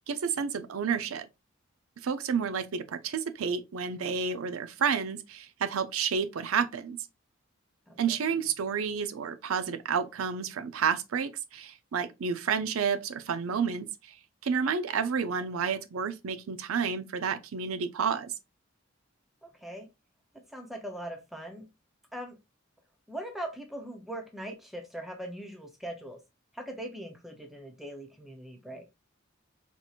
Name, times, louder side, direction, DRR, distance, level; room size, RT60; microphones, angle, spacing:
voice 1, 0.1-1.3 2.0-7.1 8.0-14.2 14.4-18.3, right 6 dB, 85° right, 0.5 m, -30 dB
voice 2, 19.4-19.9 20.5-21.7 22.1-22.3 23.1-26.2 26.5-28.9, right 1 dB, ahead, 0.6 m, -41 dB
4.2 x 2.9 x 2.4 m
head